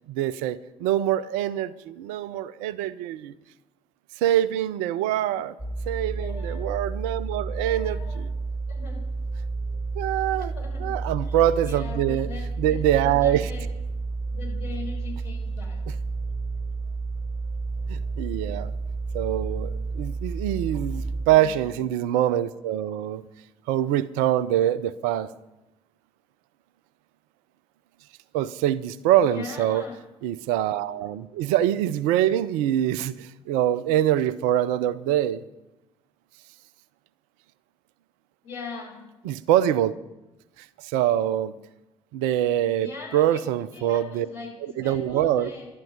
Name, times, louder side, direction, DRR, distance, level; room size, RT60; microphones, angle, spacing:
voice 1, 0.1-3.3 4.2-5.5 5.9-8.3 9.9-10.5 10.8-12.3 12.6-13.5 17.9-18.7 19.1-23.2 23.7-25.3 28.3-29.8 30.2-35.4 39.2-40.0 40.6-41.5 42.1-44.3 44.8-45.5, right 12 dB, 65° right, 0.6 m, -24 dB
sound 1, 5.6-21.3, right 3 dB, 15° right, 1.6 m, -31 dB
voice 2, 6.1-6.7 7.6-8.2 8.7-9.0 10.2-10.9 11.2-13.6 14.3-15.8 21.2-21.8 29.2-30.0 38.4-39.0 42.8-43.4 43.7-45.7, left 4 dB, 70° left, 6.5 m, -41 dB
17.0 x 12.0 x 5.4 m
figure-of-eight pair, 45°, 15 cm